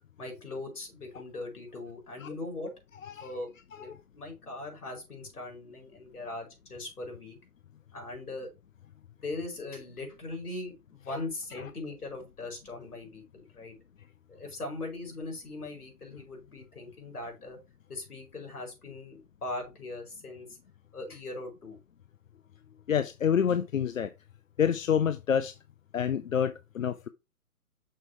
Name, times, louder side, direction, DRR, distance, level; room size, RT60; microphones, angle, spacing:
voice 1, 0.2-2.7 3.2-3.5 3.8-7.4 7.9-8.5 9.2-13.7 14.3-17.6 17.9-20.5 20.9-21.8, left 2 dB, 75° left, 4.9 m, -40 dB
voice 2, 22.9-24.1 24.6-25.5 25.9-27.1, left 8 dB, 60° left, 0.6 m, -28 dB
6.6 x 5.1 x 4.5 m
hypercardioid pair, 155°, 46 cm